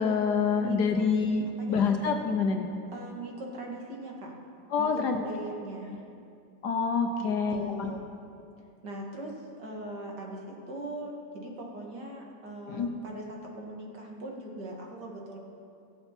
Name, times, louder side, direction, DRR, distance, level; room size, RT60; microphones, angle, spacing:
voice 1, 0.0-2.7 4.7-5.2 6.6-7.9 12.7-12.9, left 5 dB, 75° left, 5 dB, 1.4 m, -27 dB
voice 2, 0.6-1.1 1.6-2.0 2.9-4.3 4.8-6.0 7.2-8.0 8.8-15.4, right 2 dB, 75° right, -1 dB, 2.5 m, -40 dB
22.0 x 8.0 x 4.5 m, 2.5 s
omnidirectional pair, 1.9 m